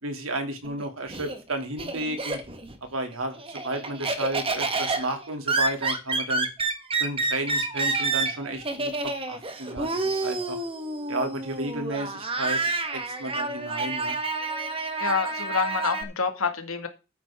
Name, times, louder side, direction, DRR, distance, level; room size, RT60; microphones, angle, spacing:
voice 1, 0.0-2.4 2.9-6.5 7.0-10.6 11.1-12.6 12.9-14.2, right 1 dB, 75° right, 2.7 m, -32 dB
Laughter, 0.6-2.8 3.1-16.0, right 3 dB, 25° right, 1.5 m, -29 dB
voice 2, 15.0-16.9, left 5 dB, 85° left, 2.0 m, -27 dB
12.5 x 9.4 x 3.7 m
head